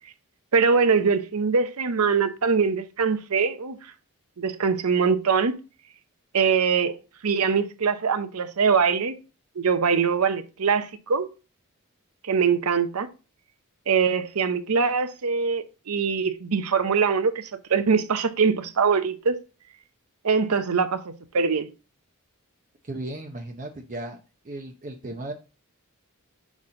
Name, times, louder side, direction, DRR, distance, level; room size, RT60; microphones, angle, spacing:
voice 1, 0.5-3.8 4.4-5.6 6.3-7.0 7.2-9.2 9.6-11.3 12.2-13.1 13.9-19.4 20.2-21.0 21.3-21.7, right 5 dB, 90° right, 0.7 m, -23 dB
voice 2, 22.8-24.2 24.4-25.3, right 1 dB, 35° right, 0.7 m, -35 dB
6.0 x 4.2 x 3.8 m
head